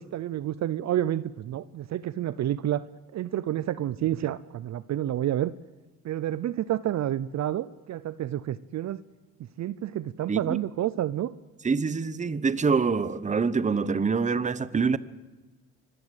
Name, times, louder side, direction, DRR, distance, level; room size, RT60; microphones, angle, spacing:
voice 1, 0.0-2.9 3.1-5.5 6.0-9.0 9.6-11.3, right 12 dB, 50° right, 17 dB, 0.7 m, -29 dB
voice 2, 11.6-15.0, right 5 dB, 20° right, 17 dB, 1.0 m, -25 dB
25.0 x 15.0 x 8.3 m, 1.2 s
cardioid pair, 95°, 36 cm